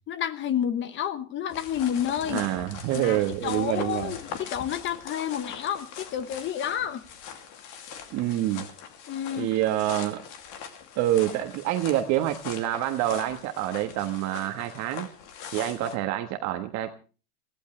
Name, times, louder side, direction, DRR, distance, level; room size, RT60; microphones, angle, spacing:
voice 1, 0.1-2.4 2.9-7.0 9.1-9.5, left 9 dB, 25° left, 1.2 m, -30 dB
sound 1, 1.5-16.0, left 7 dB, 40° left, 2.6 m, -41 dB
voice 2, 2.3-4.1 8.1-8.7 9.4-10.2 11.0-15.1 15.5-16.9, right 13 dB, 35° right, 1.4 m, -27 dB
22.0 x 16.0 x 3.2 m
supercardioid pair, 145°, 47 cm